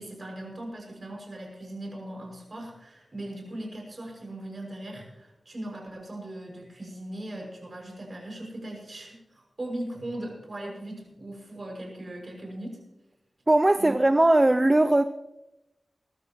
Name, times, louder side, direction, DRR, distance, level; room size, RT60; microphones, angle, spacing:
voice 1, 0.0-12.8 13.8-14.0, right 1 dB, 45° right, 6.3 m, -39 dB
voice 2, 13.5-15.1, right 1 dB, 25° right, 0.5 m, -19 dB
22.0 x 13.0 x 3.1 m
wide cardioid pair, 70°, 0 cm